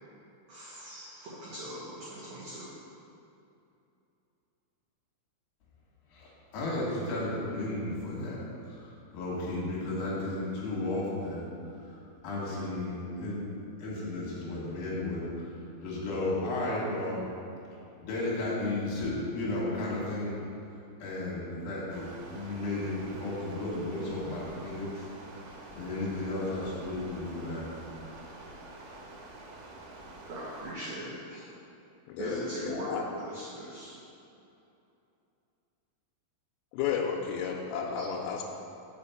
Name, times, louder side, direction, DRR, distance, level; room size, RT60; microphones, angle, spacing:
voice 1, 0.5-2.8 30.3-31.5 32.2-34.0 38.0-38.1, equal, 65° right, -9 dB, 2.3 m, -39 dB
voice 2, 6.1-11.5 11.8-12.0 12.2-13.4 13.8-17.2 18.0-20.4 21.0-25.1 25.4-27.6, left 2 dB, 65° left, -6 dB, 2.5 m, -34 dB
Stream, 21.9-30.7, right 2 dB, 90° right, 4.0 m, -48 dB
voice 3, 32.1-33.0 36.7-38.4, left 7 dB, 85° left, -1 dB, 3.2 m, -33 dB
6.9 x 5.2 x 7.1 m, 2.7 s
omnidirectional pair, 5.9 m